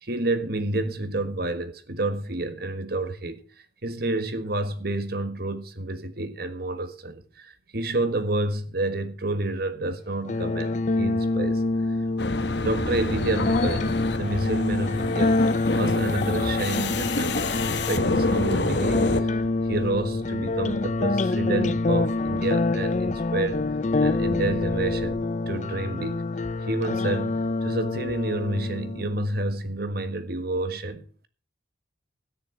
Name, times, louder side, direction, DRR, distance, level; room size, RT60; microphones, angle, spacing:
voice 1, 0.0-3.4 3.8-12.0 12.6-15.4 15.7-23.6 24.0-26.3 26.7-31.3, right 2 dB, 50° right, 1.6 m, -29 dB
sound 1, 10.3-29.2, left 2 dB, 40° left, 0.5 m, -26 dB
sound 2, 12.2-19.2, left 2 dB, 60° left, 1.3 m, -28 dB
sound 3, 16.6-25.2, right 1 dB, 5° right, 2.2 m, -47 dB
13.5 x 10.0 x 4.6 m
head